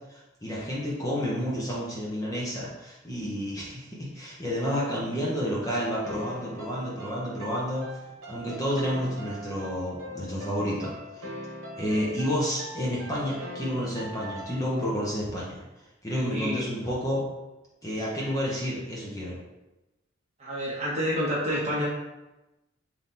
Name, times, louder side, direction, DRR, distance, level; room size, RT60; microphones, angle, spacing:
voice 1, 0.0-7.9 8.3-11.2 11.8-15.6 16.0-17.2 17.8-19.4, equal, 15° left, -6 dB, 0.7 m, -30 dB
sound 1, 6.0-14.9, equal, 90° right, 1.0 m, -41 dB
voice 2, 16.3-16.6 20.4-21.9, equal, 35° right, -6 dB, 1.2 m, -28 dB
3.6 x 2.8 x 3.8 m, 1.0 s
head